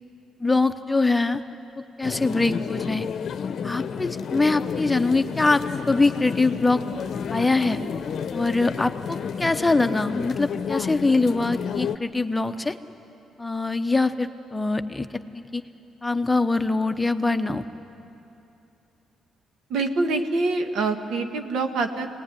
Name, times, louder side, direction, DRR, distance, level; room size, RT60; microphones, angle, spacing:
voice 1, 0.4-1.4 1.8-3.1 3.6-6.8 7.3-7.8 8.3-12.8 13.4-15.1 15.3-15.6 16.0-17.7, left 3 dB, 15° left, 8 dB, 0.9 m, -23 dB
sound 1, 2.0-12.0, left 7 dB, 60° left, 0.8 m, -31 dB
voice 2, 19.7-22.1, right 3 dB, 80° right, 6 dB, 1.6 m, -25 dB
23.5 x 19.0 x 9.9 m, 2.8 s
cardioid pair, 90°, 0 cm